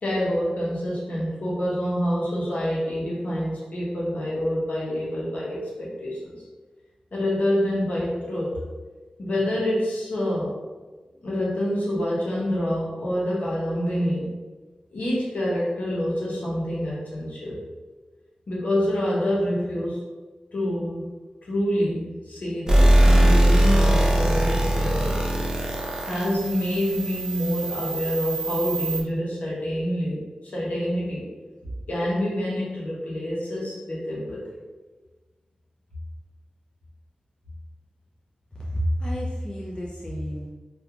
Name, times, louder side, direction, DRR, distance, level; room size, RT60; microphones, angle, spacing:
voice 1, 0.0-6.3 7.1-8.6 9.2-10.5 11.2-14.3 14.9-17.6 18.5-20.0 20.5-21.1 21.5-25.2 26.0-30.2 30.5-31.2 31.9-34.5, equal, 75° left, -6 dB, 0.9 m, -27 dB
sound 1, 22.7-29.0, right 1 dB, 25° right, 0.5 m, -21 dB
voice 2, 38.6-40.5, equal, 35° left, -6 dB, 0.6 m, -29 dB
2.8 x 2.4 x 2.4 m, 1.3 s
cardioid pair, 55°, 3 cm